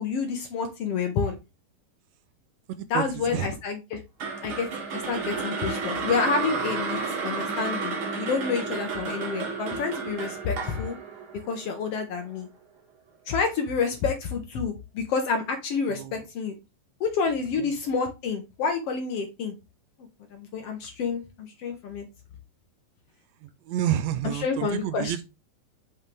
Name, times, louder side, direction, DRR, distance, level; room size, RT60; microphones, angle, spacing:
voice 1, 0.0-1.4 2.9-4.0 4.4-10.9 11.5-12.5 13.3-16.6 17.0-19.5 20.3-22.0 24.3-25.2, left 5 dB, 70° left, 1.4 m, -29 dB
voice 2, 2.7-3.0 3.3-3.5 15.9-16.2 23.4-25.2, right 11 dB, 90° right, 1.5 m, -29 dB
sound 1, 4.2-12.4, right 4 dB, 55° right, 1.5 m, -32 dB
6.0 x 5.5 x 3.3 m
omnidirectional pair, 3.9 m